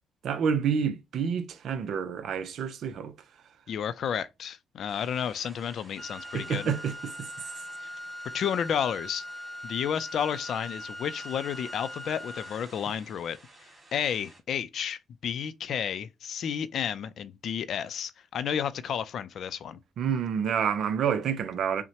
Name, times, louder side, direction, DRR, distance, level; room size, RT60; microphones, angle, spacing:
voice 1, 0.2-3.1 6.3-7.1 20.0-21.8, right 7 dB, 70° right, 0.6 m, -28 dB
voice 2, 3.7-6.7 7.8-7.9 8.3-9.2 9.6-13.4 13.9-19.8, left 8 dB, 65° left, 0.4 m, -31 dB
sound 1, 4.9-14.4, right 2 dB, 15° right, 2.1 m, -53 dB
Wind instrument woodwind instrument, 6.0-12.6, left 1 dB, 5° left, 0.5 m, -41 dB
5.7 x 2.2 x 2.8 m
cardioid pair, 90°, 0 cm